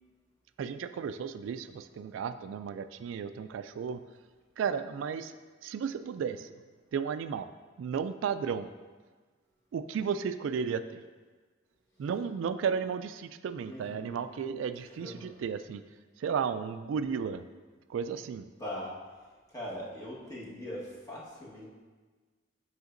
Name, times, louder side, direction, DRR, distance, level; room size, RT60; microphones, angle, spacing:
voice 1, 0.6-4.0 4.6-5.4 5.6-6.5 6.9-7.5 7.8-8.7 9.7-11.0 12.0-15.8 16.2-17.4 17.9-18.5, right 6 dB, 80° right, 12 dB, 0.3 m, -34 dB
voice 2, 13.6-14.2 14.9-15.3 18.6-19.0 19.5-21.7, left 1 dB, 20° left, -6 dB, 1.4 m, -41 dB
7.8 x 5.6 x 2.6 m, 1.4 s
head